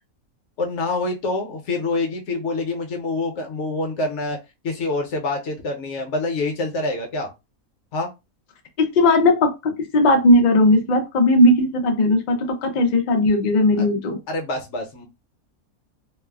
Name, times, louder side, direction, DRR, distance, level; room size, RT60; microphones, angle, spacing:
voice 1, 0.6-4.4 4.6-7.3 7.9-8.1 13.8-13.9 14.3-15.0, left 2 dB, 60° left, 3 dB, 0.9 m, -26 dB
voice 2, 8.8-14.2, left 1 dB, 90° left, 5 dB, 0.4 m, -17 dB
3.1 x 2.0 x 2.3 m, 0.24 s
omnidirectional pair, 1.5 m